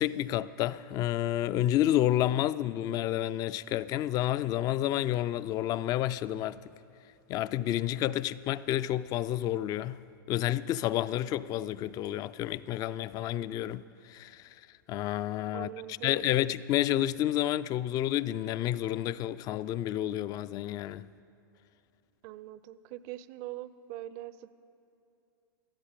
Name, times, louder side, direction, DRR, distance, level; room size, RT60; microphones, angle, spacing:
voice 1, 0.0-6.6 7.3-10.0 10.3-14.6 14.9-15.7 16.0-21.1, left 13 dB, 30° left, 0.4 m, -30 dB
voice 2, 15.5-16.4 22.2-24.5, right 14 dB, 45° right, 0.5 m, -42 dB
18.0 x 12.5 x 5.1 m
hypercardioid pair, 105°, 12 cm